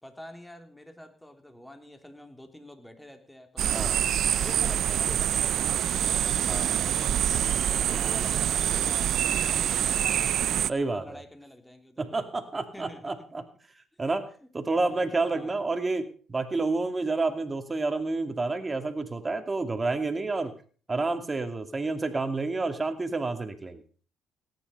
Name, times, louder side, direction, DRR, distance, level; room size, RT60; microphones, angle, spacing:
voice 1, 0.0-4.1 4.4-10.4 10.7-12.2 12.7-13.5 14.1-14.2 14.7-15.6, left 1 dB, 5° left, 6 dB, 3.3 m, -48 dB
sound 1, 3.6-10.7, right 10 dB, 65° right, 0.6 m, -26 dB
voice 2, 6.5-6.8 10.7-11.2 12.0-13.4 14.0-14.2 14.5-20.5 20.9-23.8, right 3 dB, 30° right, 8 dB, 2.5 m, -29 dB
18.0 x 10.5 x 5.5 m, 0.43 s
hypercardioid pair, 55°, 0 cm